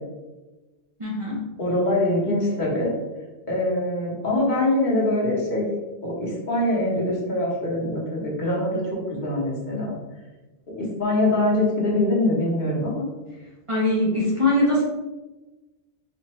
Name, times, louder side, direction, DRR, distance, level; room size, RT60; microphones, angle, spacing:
voice 1, 1.0-1.4 13.7-14.8, left 1 dB, 35° right, -6 dB, 0.6 m, -22 dB
voice 2, 1.6-2.9 3.5-5.7 6.0-8.8 9.2-9.9 10.7-13.1, left 1 dB, 45° left, -4 dB, 1.1 m, -23 dB
4.3 x 2.5 x 3.0 m, 1.1 s
omnidirectional pair, 1.1 m